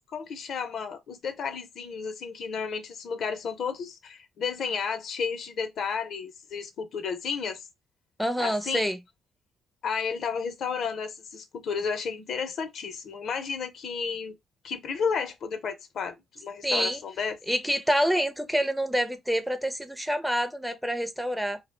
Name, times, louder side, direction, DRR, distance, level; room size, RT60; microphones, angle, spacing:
voice 1, 0.1-7.7 8.4-8.9 9.8-14.3 14.6-17.4, left 6 dB, 65° left, 0.5 m, -32 dB
voice 2, 8.2-9.0 16.6-17.0 17.5-21.6, equal, 5° right, 0.4 m, -27 dB
2.3 x 2.0 x 3.1 m
cardioid pair, 90°, 0 cm